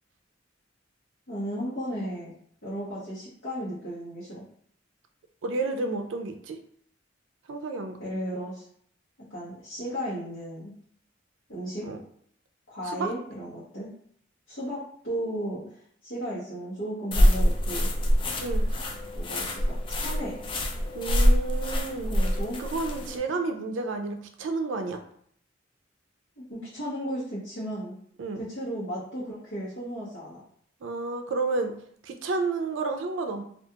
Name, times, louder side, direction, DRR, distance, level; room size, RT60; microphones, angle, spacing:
voice 1, 1.3-2.3 2.6-4.4 8.0-8.6 9.3-10.7 11.5-11.9 12.7-13.9 14.5-15.6 16.0-17.9 19.1-20.4 22.1-22.6 26.4-27.9 28.4-30.4, equal, 80° left, -10 dB, 0.9 m, -35 dB
voice 2, 5.4-6.6 7.5-8.0 11.8-12.0 12.8-13.1 18.4-18.8 20.9-22.2 22.6-25.0 28.2-28.4 30.8-31.7 32.0-33.4, right 3 dB, 75° right, 6 dB, 0.4 m, -31 dB
sound 1, 17.1-23.2, equal, 25° left, 0.3 m, -25 dB
2.4 x 2.3 x 2.8 m, 0.63 s
head